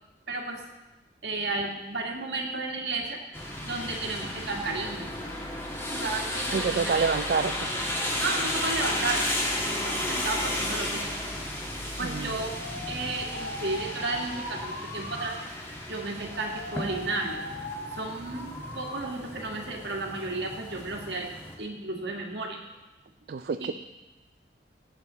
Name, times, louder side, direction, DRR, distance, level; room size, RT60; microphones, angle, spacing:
voice 1, 0.3-0.6 1.2-5.1 5.9-7.1 8.1-9.2 9.5-11.1 12.0-12.6 12.9-15.4 15.9-17.4 17.9-21.3 21.6-22.6 23.6-23.7, right 3 dB, 80° right, 1 dB, 1.9 m, -33 dB
sound 1, 3.3-21.5, left 1 dB, 15° left, 1.6 m, -33 dB
voice 2, 6.5-7.7 12.0-12.4 23.3-23.7, right 5 dB, 60° right, 9 dB, 0.3 m, -27 dB
Alarm, 11.8-19.0 19.4-19.9, left 2 dB, 80° left, 1.6 m, -41 dB
17.5 x 8.2 x 4.1 m, 1.1 s
head